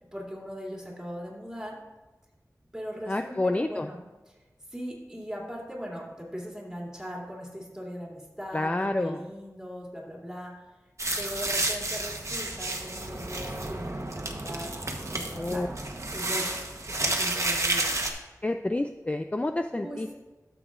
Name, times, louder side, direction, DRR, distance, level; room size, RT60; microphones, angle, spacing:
voice 1, 0.1-1.8 2.7-4.0 4.3-4.4 4.7-8.7 9.0-10.5 11.2-14.7 15.1-15.7 16.1-16.5 16.9-18.3 19.7-20.1, equal, 10° right, -3 dB, 2.7 m, -39 dB
voice 2, 3.1-3.9 8.5-9.2 15.3-15.7 18.4-20.1, left 2 dB, 20° left, 7 dB, 0.3 m, -29 dB
sound 1, 11.0-18.1, right 2 dB, 50° right, 1.1 m, -31 dB
12.5 x 7.0 x 2.5 m, 1.1 s
wide cardioid pair, 55°, 6 cm